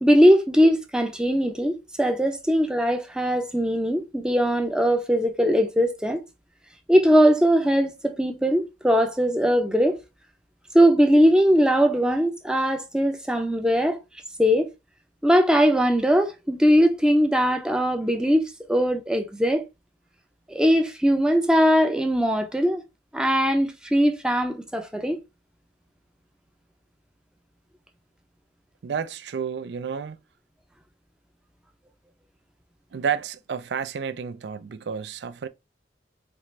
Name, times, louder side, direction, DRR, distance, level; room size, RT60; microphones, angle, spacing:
voice 1, 0.0-6.2 6.9-10.0 10.7-14.0 14.4-14.7 15.2-18.4 18.7-19.6 20.5-22.8 23.1-25.2, equal, 5° right, 0.5 m, -20 dB
voice 2, 28.8-30.2 32.9-35.5, right 7 dB, 70° right, 0.4 m, -30 dB
4.3 x 2.5 x 3.1 m
head